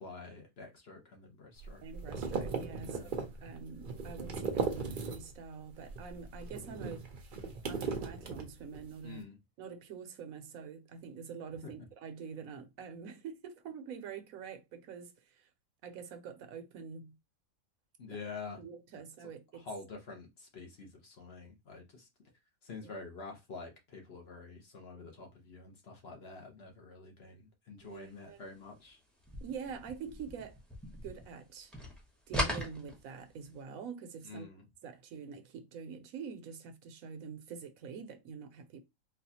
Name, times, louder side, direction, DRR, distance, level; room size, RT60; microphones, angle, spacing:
voice 1, 0.0-1.8 2.8-3.2 9.0-9.4 11.6-11.7 18.0-18.7 19.5-22.1 22.6-29.0 34.2-34.6, left 4 dB, 50° left, 1.0 m, -47 dB
sound 1, 1.6-5.5 5.8-8.9, right 4 dB, 50° right, 0.7 m, -38 dB
voice 2, 1.8-3.0 3.4-7.1 7.6-9.2 9.6-15.5 15.8-17.2 18.6-19.7 27.8-28.4 29.4-30.6 31.0-31.7 32.3-34.5 34.8-38.8, right 6 dB, 80° right, 1.1 m, -46 dB
sound 2, 29.2-31.5 31.7-33.5, equal, ahead, 0.7 m, -38 dB
4.0 x 2.4 x 2.7 m
omnidirectional pair, 1.5 m